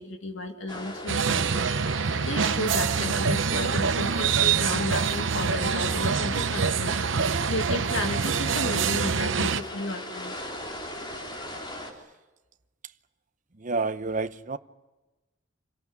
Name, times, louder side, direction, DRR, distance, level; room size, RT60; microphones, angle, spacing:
voice 1, 0.0-1.5 2.2-10.3, left 2 dB, 85° left, 3 dB, 2.3 m, -33 dB
sound 1, 0.7-11.9, left 1 dB, 25° left, 3.6 m, -40 dB
sound 2, 1.1-9.6, right 6 dB, 70° right, 0.8 m, -25 dB
voice 2, 13.6-14.6, right 3 dB, 40° right, 11 dB, 0.8 m, -29 dB
27.5 x 18.0 x 9.7 m, 1.1 s
head